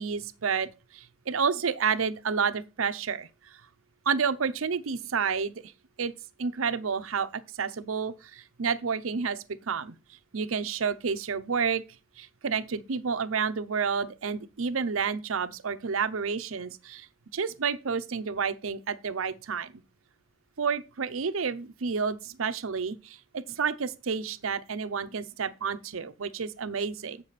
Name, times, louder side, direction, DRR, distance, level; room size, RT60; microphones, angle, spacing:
voice 1, 0.0-3.6 4.1-5.5 6.0-6.1 6.4-9.9 10.3-11.8 12.2-17.1 17.3-19.8 20.6-27.2, right 6 dB, 90° right, 0.7 m, -30 dB
8.0 x 6.9 x 4.1 m
head